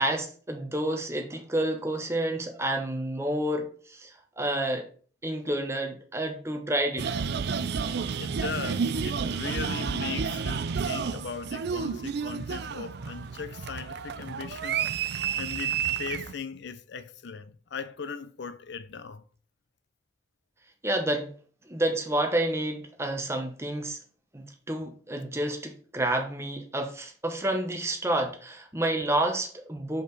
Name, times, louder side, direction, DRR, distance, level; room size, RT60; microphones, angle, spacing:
voice 1, 0.0-4.9 5.2-7.3 20.8-21.3 21.7-24.0 24.3-30.0, right 1 dB, 15° right, 1.0 m, -29 dB
sound 1, 7.0-16.3, right 6 dB, 55° right, 0.4 m, -31 dB
voice 2, 8.2-14.8 15.4-19.2, left 5 dB, 60° left, 0.5 m, -38 dB
6.7 x 5.1 x 4.0 m
head